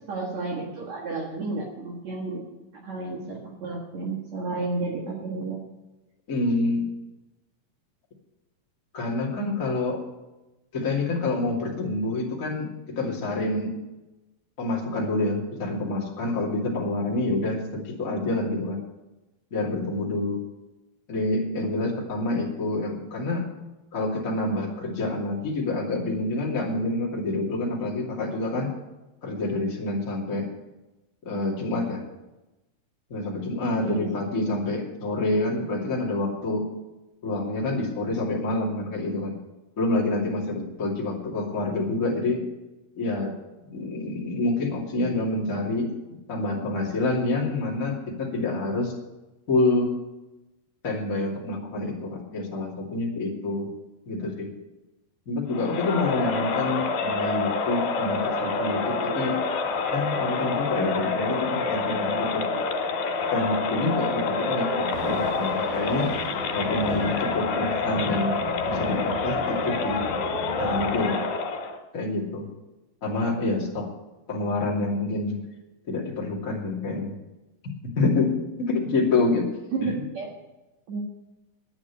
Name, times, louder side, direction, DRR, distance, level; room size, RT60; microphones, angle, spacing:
voice 1, 0.1-2.4 2.8-5.6 33.8-34.1 79.7-80.3 80.9-81.0, right 3 dB, 55° right, -1 dB, 2.5 m, -31 dB
voice 2, 6.3-6.9 8.9-10.0 10.7-13.7 14.6-18.8 19.5-20.4 21.1-23.5 23.9-28.7 29.2-30.5 31.2-32.0 33.1-36.6 37.2-39.3 39.8-42.4 42.9-43.3 43.6-45.9 46.3-48.9 49.5-49.9 50.8-53.7 54.1-54.5 55.3-59.4 59.9-62.4 63.3-66.1 66.5-68.4 68.7-70.0 70.6-71.3 71.9-72.5 73.0-73.9 74.3-75.4 75.9-77.1 77.9-79.5 79.8-80.0, left 2 dB, 25° left, -3 dB, 2.6 m, -27 dB
Crowd, 55.5-71.8, left 4 dB, 85° left, 3.9 m, -27 dB
Thunder, 64.8-71.0, right 1 dB, 30° right, 3.0 m, -36 dB
10.0 x 9.6 x 8.4 m, 1.0 s
omnidirectional pair, 4.3 m